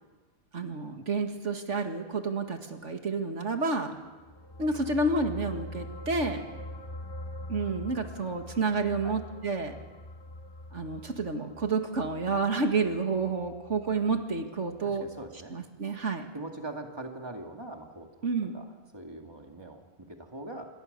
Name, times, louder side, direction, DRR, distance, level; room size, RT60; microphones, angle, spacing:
voice 1, 0.5-4.0 4.6-6.5 7.5-9.7 10.7-15.1 15.5-16.3 18.2-18.6, right 3 dB, 70° right, 5 dB, 2.3 m, -30 dB
sound 1, 4.1-14.8 15.1-15.3, left 1 dB, 20° left, 1.2 m, -44 dB
voice 2, 14.8-15.6 16.3-18.1 18.5-20.7, right 2 dB, 20° right, 3 dB, 2.3 m, -42 dB
28.0 x 23.0 x 6.8 m, 1.3 s
omnidirectional pair, 1.3 m